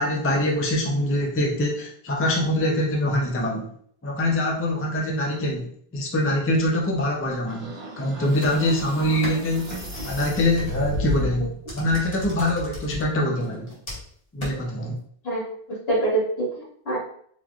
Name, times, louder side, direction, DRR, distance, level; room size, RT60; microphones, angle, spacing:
voice 1, 0.0-3.7 4.0-9.7 10.0-13.7 14.3-15.0, left 1 dB, 20° left, -1 dB, 0.4 m, -24 dB
sound 1, 7.5-11.5, left 1 dB, 35° right, 0.7 m, -32 dB
sound 2, 8.3-10.7 11.7-13.0 13.4-14.1 14.4-14.5, left 1 dB, 40° left, 1.3 m, -37 dB
voice 2, 15.2-17.0, right 2 dB, 75° left, -6 dB, 1.9 m, -26 dB
3.6 x 3.1 x 2.4 m, 0.62 s
omnidirectional pair, 1.0 m